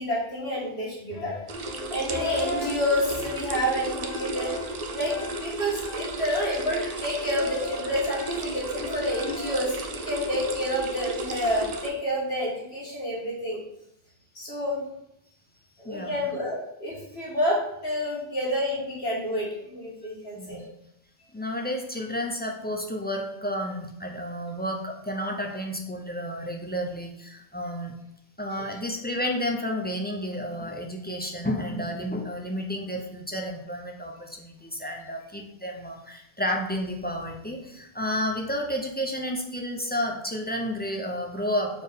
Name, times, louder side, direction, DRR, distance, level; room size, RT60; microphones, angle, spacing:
voice 1, 0.0-1.3 1.9-4.5 4.9-13.6 14.4-14.8 15.8-20.6, equal, 80° left, -4 dB, 2.1 m, -29 dB
sound 1, 1.1-10.2, left 4 dB, 50° left, 0.7 m, -39 dB
sound 2, 1.5-11.9, right 2 dB, 45° right, 0.6 m, -34 dB
voice 2, 15.8-16.2 20.4-20.6 21.3-27.9 28.4-41.8, equal, 10° left, 1 dB, 0.6 m, -31 dB
4.4 x 4.3 x 5.1 m, 0.80 s
omnidirectional pair, 1.0 m